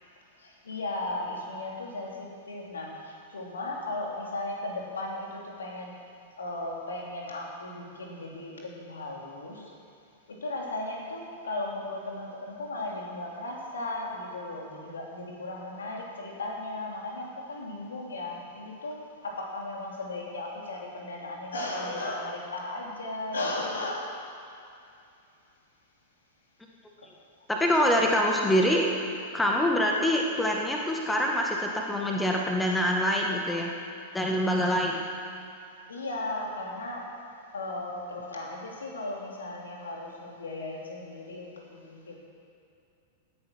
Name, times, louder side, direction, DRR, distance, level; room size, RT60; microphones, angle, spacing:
voice 1, 0.4-5.9 6.4-9.7 10.3-19.0 19.2-24.2 34.4-34.5 35.6-37.1 37.5-42.2, left 2 dB, 70° left, -2 dB, 3.2 m, -36 dB
voice 2, 27.5-28.8 29.3-33.7 34.1-35.1, equal, 10° left, 0 dB, 1.7 m, -25 dB
18.5 x 9.6 x 6.2 m, 2.5 s
figure-of-eight pair, 95°, 0 cm